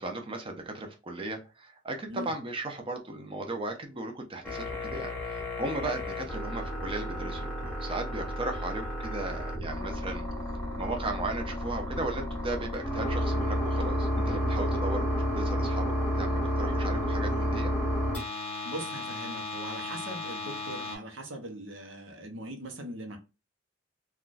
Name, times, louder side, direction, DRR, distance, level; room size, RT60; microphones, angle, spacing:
voice 1, 0.0-10.3 10.8-15.1 15.4-15.9 16.2-17.7, right 2 dB, 25° right, 4 dB, 0.6 m, -36 dB
sound 1, 4.5-21.0, equal, 5° left, 1.2 m, -31 dB
voice 2, 18.6-23.2, right 1 dB, 70° right, 4 dB, 0.8 m, -41 dB
3.5 x 2.3 x 2.5 m, 0.30 s
head